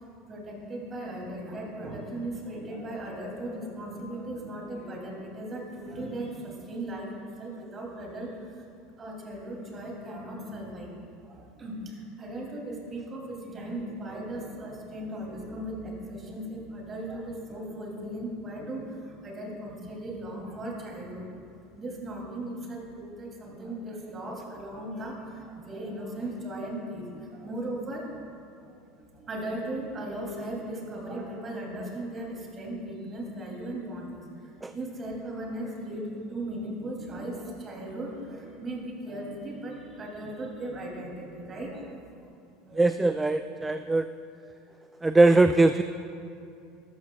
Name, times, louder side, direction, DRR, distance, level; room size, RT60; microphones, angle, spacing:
voice 1, 0.3-8.7 9.0-10.9 11.3-21.3 21.8-42.3 42.7-42.9 43.4-43.5, right 1 dB, 30° right, -1 dB, 2.7 m, -37 dB
voice 2, 42.8-44.1 45.0-45.8, right 2 dB, 15° right, 10 dB, 0.3 m, -21 dB
13.0 x 12.0 x 2.3 m, 2.6 s
hypercardioid pair, 80°, 0 cm